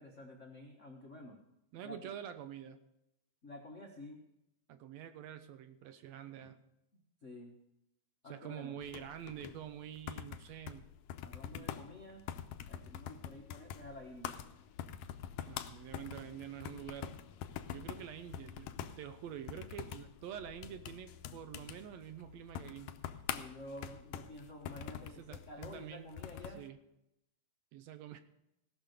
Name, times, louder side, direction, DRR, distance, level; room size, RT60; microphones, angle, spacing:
voice 1, 0.0-1.4 1.8-2.1 3.4-4.2 6.9-7.6 8.2-8.7 11.2-12.2 12.7-14.4 23.3-26.6, left 1 dB, 55° left, 0 dB, 0.8 m, -50 dB
voice 2, 1.7-2.8 4.7-6.6 8.2-10.9 11.5-11.7 15.4-17.2 17.7-22.9 25.0-26.1 26.6-26.8 27.7-28.2, right 9 dB, 80° right, 10 dB, 1.8 m, -47 dB
sound 1, 8.8-26.6, left 10 dB, 75° left, 1.8 m, -46 dB
17.5 x 6.2 x 6.5 m, 0.85 s
omnidirectional pair, 3.3 m